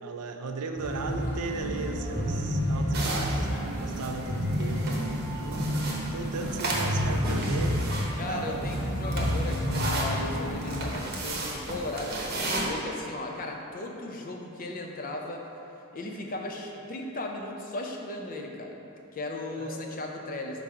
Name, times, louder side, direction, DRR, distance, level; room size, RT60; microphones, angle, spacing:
voice 1, 0.0-8.6 19.5-19.8, right 4 dB, 85° right, 5 dB, 0.5 m, -37 dB
sound 1, 0.8-10.9, equal, 15° left, 1.5 m, -30 dB
sound 2, 2.9-12.6, right 2 dB, 45° right, 0.9 m, -35 dB
voice 2, 6.2-6.6 8.2-15.5 15.9-18.8 19.1-20.6, left 2 dB, 40° left, 2 dB, 0.5 m, -36 dB
4.7 x 4.0 x 5.5 m, 2.8 s
head